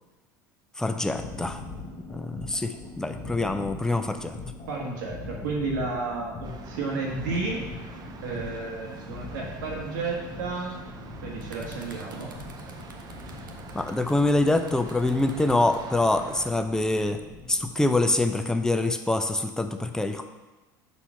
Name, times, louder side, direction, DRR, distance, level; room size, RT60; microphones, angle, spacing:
voice 1, 0.8-1.6 2.1-4.4 13.7-17.2 17.5-20.3, left 2 dB, 5° left, 7 dB, 0.5 m, -25 dB
sound 1, 1.1-17.7, left 3 dB, 40° left, 1.1 m, -41 dB
voice 2, 4.7-10.8 11.2-12.3, right 3 dB, 65° right, -1 dB, 1.1 m, -32 dB
sound 2, 6.4-16.5, right 5 dB, 40° right, 0.7 m, -45 dB
sound 3, 11.4-15.8 16.7-16.9, right 3 dB, 85° right, 0.7 m, -50 dB
5.7 x 4.2 x 4.5 m, 1.1 s
figure-of-eight pair, 70°, 11 cm